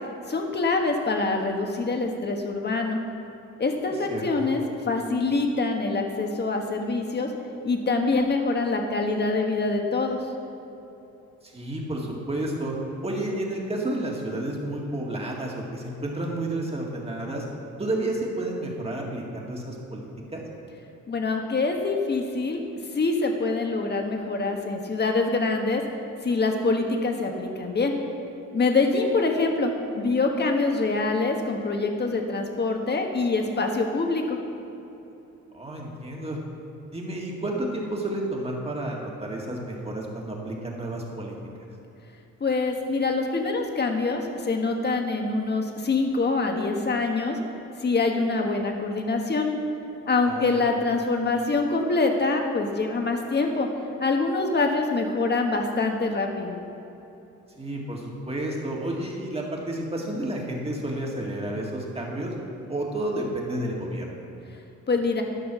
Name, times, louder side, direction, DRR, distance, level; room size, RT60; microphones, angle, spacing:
voice 1, 0.3-3.0 3.6-7.3 7.6-10.2 21.1-22.6 22.9-25.8 26.2-27.9 28.5-34.4 42.4-47.4 47.8-49.5 50.1-53.7 54.0-56.5 64.9-65.2, left 3 dB, 35° left, 3 dB, 1.4 m, -25 dB
voice 2, 4.1-4.5 11.4-12.7 13.0-17.4 17.8-20.4 35.5-36.4 36.9-41.4 50.3-50.6 57.6-62.3 62.7-64.1, right 1 dB, 20° right, -1 dB, 2.1 m, -31 dB
12.0 x 6.2 x 6.2 m, 2.9 s
cardioid pair, 90°, 30 cm